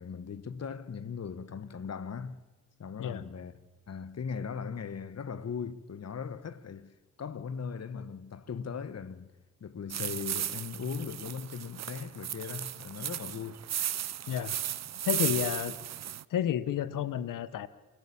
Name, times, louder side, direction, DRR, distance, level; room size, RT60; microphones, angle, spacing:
voice 1, 0.0-2.4 2.8-3.5 3.9-9.3 9.6-13.6, left 6 dB, 55° left, 1.3 m, -39 dB
sound 1, 9.9-16.2, right 10 dB, 55° right, 0.6 m, -35 dB
voice 2, 15.0-15.8 16.3-17.7, left 10 dB, 85° left, 1.0 m, -31 dB
29.0 x 13.5 x 8.7 m
cardioid pair, 60°, 31 cm